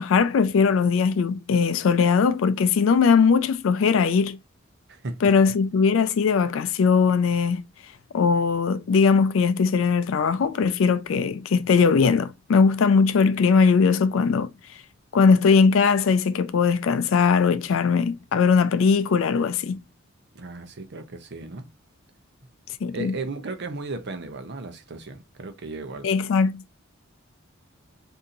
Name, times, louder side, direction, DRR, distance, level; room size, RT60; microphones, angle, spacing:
voice 1, 0.0-4.4 5.2-7.6 8.1-14.5 15.1-19.8 22.8-23.1 26.0-26.6, left 5 dB, 70° left, 0.4 m, -20 dB
voice 2, 20.3-21.7 22.9-26.1, right 3 dB, 55° right, 0.7 m, -35 dB
2.7 x 2.7 x 3.8 m
head